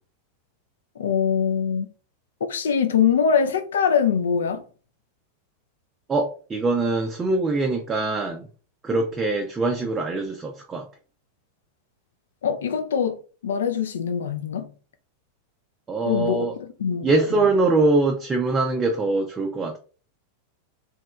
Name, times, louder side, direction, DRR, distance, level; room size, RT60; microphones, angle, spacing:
voice 1, 1.0-1.9 2.5-4.6 12.4-14.7 16.1-17.4, left 7 dB, 65° left, 0.4 m, -23 dB
voice 2, 6.1-8.5 8.8-10.9 15.9-16.5 17.0-19.8, right 3 dB, 20° right, 0.4 m, -23 dB
3.0 x 2.8 x 2.2 m
figure-of-eight pair, 90°, 0 cm